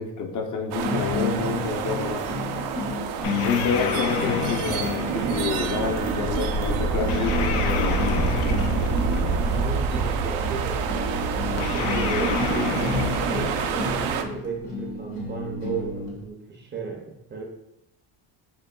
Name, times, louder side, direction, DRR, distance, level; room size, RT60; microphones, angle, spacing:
voice 1, 0.0-2.3 3.4-8.0, left 5 dB, 40° left, 3 dB, 0.5 m, -28 dB
sound 1, 0.7-14.2, right 5 dB, 85° right, 0.6 m, -27 dB
sound 2, 0.8-16.3, left 3 dB, 60° left, 1.1 m, -32 dB
sound 3, 3.2-5.8 7.1-9.6 11.6-14.1, left 7 dB, 85° left, 0.7 m, -30 dB
voice 2, 9.4-17.4, right 4 dB, 25° right, 0 dB, 0.5 m, -35 dB
6.7 x 3.0 x 2.3 m, 0.85 s
cardioid pair, 165°, 47 cm